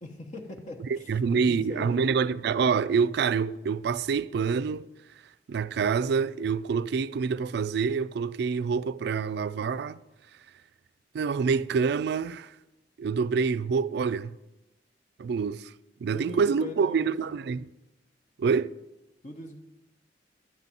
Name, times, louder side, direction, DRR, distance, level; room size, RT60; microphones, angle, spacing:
voice 1, 0.0-2.2 16.1-17.1 19.2-19.6, left 1 dB, 45° left, 1.0 m, -41 dB
voice 2, 0.9-4.9 5.5-10.0 11.1-12.5 13.0-14.3 15.2-15.7 16.0-17.7 18.4-18.7, right 5 dB, 65° right, 0.3 m, -26 dB
11.0 x 4.0 x 7.3 m
head